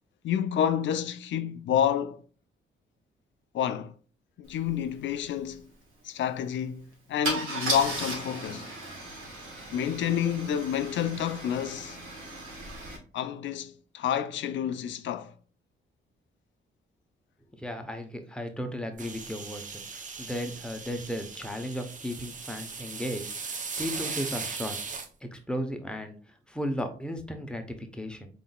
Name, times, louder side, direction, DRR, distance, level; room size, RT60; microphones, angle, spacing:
voice 1, 0.2-2.2 3.5-3.9 4.4-5.7 6.0-8.7 9.7-12.0 13.1-15.3, left 9 dB, 70° left, 0.4 m, -29 dB
Car / Engine starting / Idling, 4.6-4.7 5.0-5.2 7.2-13.0, right 2 dB, 85° right, 1.3 m, -36 dB
voice 2, 17.6-24.8 25.2-26.1 26.5-28.3, equal, 5° left, 0.7 m, -35 dB
sound 1, 19.0-25.1, right 5 dB, 40° right, 0.6 m, -38 dB
3.9 x 3.8 x 2.3 m
cardioid pair, 85°, 20 cm